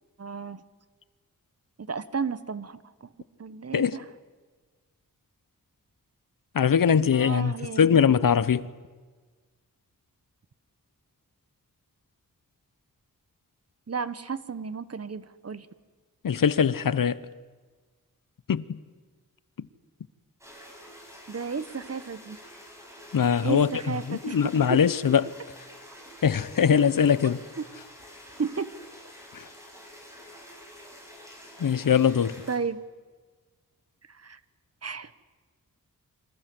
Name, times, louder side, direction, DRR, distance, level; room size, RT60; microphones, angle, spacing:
voice 1, 0.2-0.6 1.8-3.1 3.4-4.0 7.1-8.0 13.9-15.7 21.3-22.4 23.4-24.8 27.6-27.7 28.4-28.7 32.5-32.8 34.1-34.4 34.8-35.1, right 5 dB, 45° right, 1.2 m, -33 dB
voice 2, 6.5-8.7 16.2-17.2 18.5-18.8 19.6-19.7 23.1-23.7 24.1-25.3 26.2-27.4 29.3-29.5 31.6-32.4, left 7 dB, 75° left, 1.0 m, -22 dB
sound 1, 20.4-32.6, equal, 10° right, 7.1 m, -48 dB
28.0 x 25.0 x 7.8 m
wide cardioid pair, 125°, 34 cm